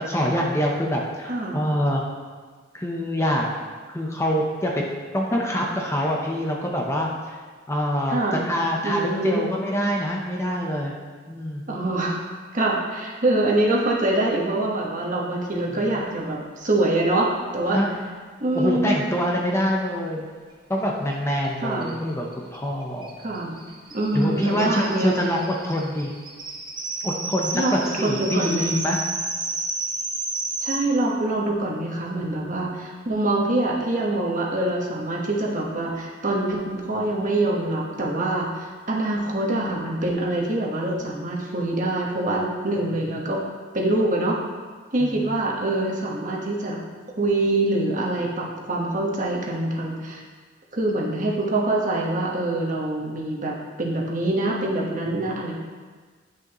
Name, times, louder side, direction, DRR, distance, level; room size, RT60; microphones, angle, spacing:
voice 1, 0.0-2.0 2.7-3.5 3.9-4.7 5.1-7.4 7.7-10.9 11.3-11.6 17.7-18.1 18.5-20.3 20.7-23.1 24.1-26.1 27.0-29.0 45.0-45.3, equal, 15° left, -1 dB, 0.7 m, -25 dB
voice 2, 1.3-1.6 8.1-8.5 8.8-9.5 11.7-12.2 12.5-17.8 18.4-19.0 21.6-22.0 23.2-23.7 23.9-25.1 27.5-28.8 30.6-43.4 43.7-44.4 44.9-46.8 47.2-50.2 50.7-55.5, right 2 dB, 40° right, -2 dB, 1.3 m, -25 dB
sound 1, 21.1-21.2 21.4-21.5 21.8-30.8, right 3 dB, 25° right, 0.8 m, -32 dB
10.0 x 6.5 x 3.0 m, 1.5 s
head